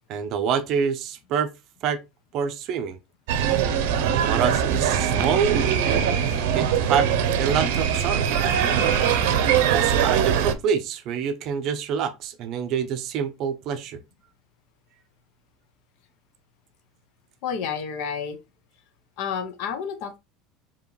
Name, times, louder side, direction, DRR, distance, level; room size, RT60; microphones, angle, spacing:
voice 1, 0.1-1.5 1.8-2.0 2.3-3.0 4.1-5.5 5.9-6.0 6.5-7.1 7.4-8.3 9.7-14.0, right 7 dB, 40° right, 0.5 m, -26 dB
sound 1, 3.3-10.5, right 8 dB, 80° right, 0.6 m, -22 dB
voice 2, 17.4-18.4 19.2-20.2, left 7 dB, 55° left, 0.7 m, -30 dB
4.7 x 2.9 x 3.1 m
cardioid pair, 170°, 0 cm